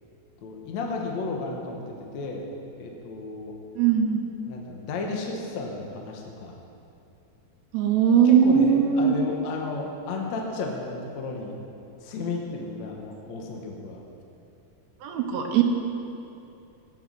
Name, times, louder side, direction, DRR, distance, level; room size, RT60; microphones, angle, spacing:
voice 1, 0.4-2.5 2.8-3.6 4.5-6.6 8.2-11.6 12.0-14.0, left 3 dB, 60° left, 0 dB, 2.0 m, -33 dB
voice 2, 3.8-4.2 7.7-9.1 15.0-15.6, right 8 dB, 70° right, 2 dB, 2.7 m, -20 dB
15.0 x 9.6 x 6.3 m, 2.7 s
omnidirectional pair, 4.9 m